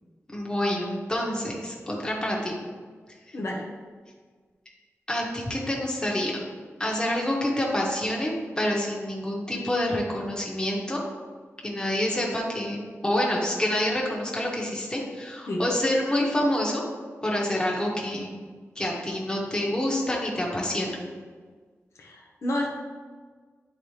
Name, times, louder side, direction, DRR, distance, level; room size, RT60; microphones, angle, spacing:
voice 1, 0.3-2.5 3.3-3.4 5.1-6.4 6.8-11.0 11.6-16.8 17.2-18.3 18.7-20.9, left 1 dB, 15° left, -3 dB, 1.3 m, -27 dB
voice 2, 3.3-3.6 15.5-15.6 22.0-22.7, left 1 dB, 65° left, -2 dB, 1.0 m, -29 dB
9.9 x 4.1 x 3.3 m, 1.5 s
wide cardioid pair, 120°, 5 cm